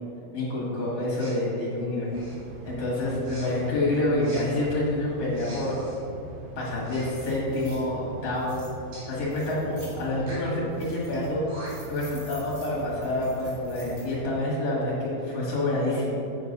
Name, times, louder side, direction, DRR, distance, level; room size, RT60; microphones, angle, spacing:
voice 1, 0.3-2.1 2.6-5.8 6.6-8.6 9.0-11.4 11.9-16.2, left 1 dB, 50° left, -6 dB, 2.2 m, -27 dB
Respiratory sounds, 1.1-1.4 2.1-2.5 3.2-3.5 4.2-4.4 5.3-6.0 6.8-7.2 7.5-7.8 8.9-9.1 10.2-10.5 11.2-11.3 11.5-11.9, right 1 dB, 65° right, 3.2 m, -45 dB
sound 1, 2.3-14.3, right 2 dB, 80° right, 1.7 m, -42 dB
sound 2, 6.7-6.8 7.1-7.8 8.3-8.7 9.3-10.0 10.5-11.3 11.6-14.1, right 1 dB, 30° right, 1.1 m, -50 dB
8.0 x 4.5 x 5.3 m, 2.7 s
omnidirectional pair, 4.2 m